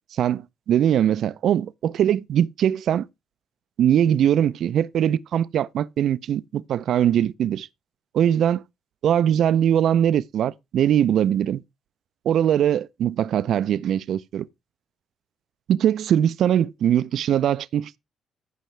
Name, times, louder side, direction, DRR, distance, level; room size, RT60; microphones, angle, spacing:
voice 1, 0.7-3.1 3.8-7.7 8.1-8.6 9.0-11.6 12.3-14.5 15.7-18.0, right 10 dB, 70° right, 0.4 m, -21 dB
15.0 x 5.6 x 3.2 m
cardioid pair, 90°, 0 cm